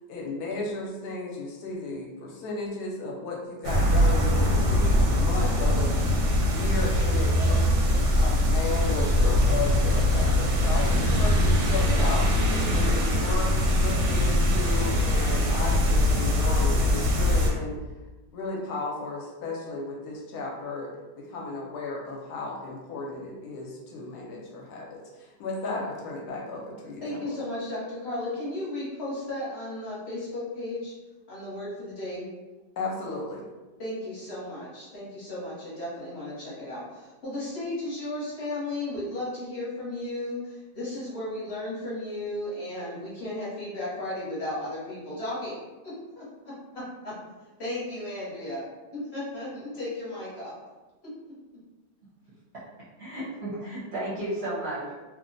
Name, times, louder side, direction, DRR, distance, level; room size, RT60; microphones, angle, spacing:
voice 1, 0.1-5.9 6.4-17.8 18.3-20.9 21.2-27.4 32.8-33.4, left 3 dB, 70° left, -1 dB, 1.1 m, -34 dB
sound 1, 3.6-17.5, left 1 dB, 85° right, 1.3 m, -22 dB
voice 2, 27.0-30.9 31.3-32.3 33.8-45.6 45.8-47.1 47.6-50.6 51.0-51.1, left 1 dB, 45° left, -8 dB, 1.0 m, -35 dB
voice 3, 53.0-54.9, right 1 dB, 55° right, -9 dB, 0.7 m, -33 dB
3.0 x 2.1 x 2.5 m, 1.2 s
omnidirectional pair, 1.9 m